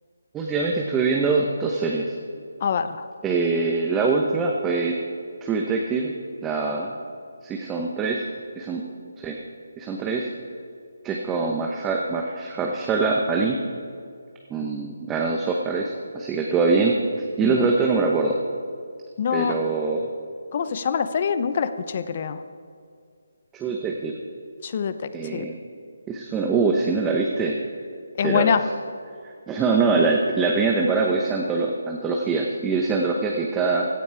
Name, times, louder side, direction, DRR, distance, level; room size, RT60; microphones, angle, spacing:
voice 1, 0.3-2.1 3.2-4.9 5.4-6.1 6.4-6.9 7.4-8.2 8.6-8.8 9.2-9.4 9.8-10.3 11.0-13.6 14.5-17.0 17.4-18.4 19.3-20.1 23.5-24.1 25.1-25.6 26.1-27.5 28.2-28.7 29.5-33.9, right 4 dB, 10° right, 0 dB, 0.9 m, -23 dB
voice 2, 2.6-3.0 17.4-17.6 19.2-19.5 20.5-22.4 24.6-24.9 25.3-25.5 28.2-28.6, left 7 dB, 40° left, 12 dB, 0.8 m, -24 dB
16.5 x 12.0 x 4.6 m, 2.3 s
figure-of-eight pair, 160°, 0 cm